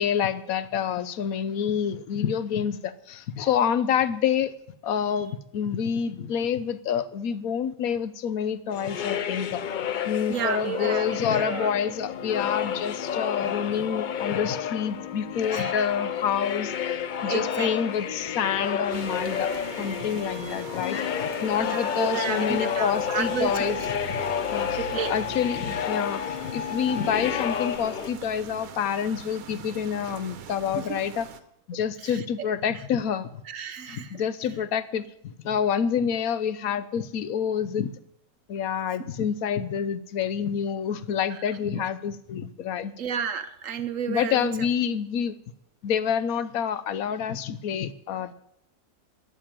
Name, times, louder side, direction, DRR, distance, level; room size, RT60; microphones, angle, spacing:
voice 1, 0.0-4.5 4.8-9.6 10.1-19.5 19.8-23.8 24.1-24.2 24.5-24.8 25.1-31.3 31.7-33.3 33.9-38.0 38.5-42.9 44.1-45.4 45.8-48.3, left 8 dB, 90° left, 14 dB, 1.2 m, -28 dB
sound 1, 8.7-28.1, left 8 dB, 65° left, 0.4 m, -31 dB
voice 2, 10.3-11.7 15.5-15.9 17.2-17.7 21.6-23.8 24.8-25.1 30.8-31.0 32.0-32.5 32.7-32.8 33.4-34.2 41.3-41.4 41.8-41.9 43.0-44.7, right 7 dB, 70° right, 10 dB, 1.1 m, -32 dB
sound 2, 17.5-27.8, left 8 dB, 45° left, 1.1 m, -37 dB
sound 3, 18.9-31.4, right 8 dB, 85° right, 1.3 m, -42 dB
13.0 x 6.9 x 9.0 m, 0.77 s
omnidirectional pair, 1.4 m